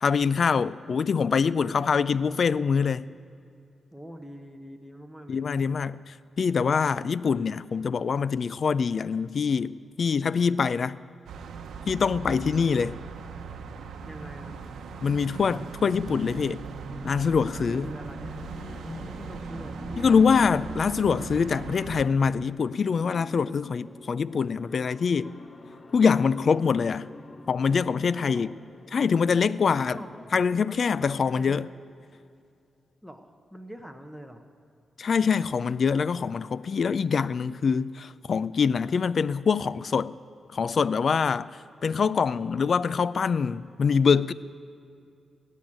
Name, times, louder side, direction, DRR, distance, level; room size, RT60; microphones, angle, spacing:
voice 1, 0.0-3.1 5.3-9.7 10.0-11.0 11.9-13.0 15.0-16.6 17.0-17.9 20.0-25.3 25.9-27.1 27.5-28.5 28.9-30.0 30.3-31.7 35.0-40.1 40.5-41.5 41.8-44.3, left 6 dB, 60° left, 0.3 m, -24 dB
voice 2, 1.4-1.9 3.9-5.4 14.0-14.6 17.6-18.5 18.8-20.6 28.1-28.5 29.6-31.6 33.0-34.4 41.9-42.8, equal, 5° left, 1.1 m, -44 dB
sound 1, 11.3-22.1, right 5 dB, 85° right, 0.8 m, -39 dB
sound 2, 16.9-30.4, left 3 dB, 35° left, 0.9 m, -46 dB
17.5 x 6.5 x 8.7 m
cardioid pair, 70°, 0 cm